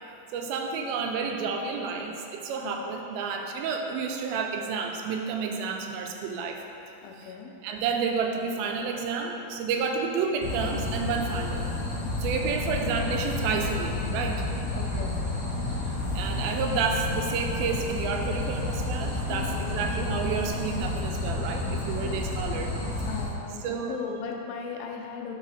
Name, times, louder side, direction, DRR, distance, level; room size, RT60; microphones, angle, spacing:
voice 1, 0.3-6.6 7.2-7.3 7.6-11.7 12.2-14.4 15.9-22.7 23.6-24.0, right 5 dB, 85° right, 3 dB, 2.4 m, -30 dB
voice 2, 7.0-7.5 9.7-10.0 14.7-15.2 19.3-19.8 22.0-22.2 23.1-25.4, left 6 dB, 85° left, 1 dB, 2.5 m, -38 dB
sound 1, 10.4-23.2, left 2 dB, 60° left, 1.6 m, -30 dB
7.0 x 4.8 x 4.2 m, 2.8 s
omnidirectional pair, 4.2 m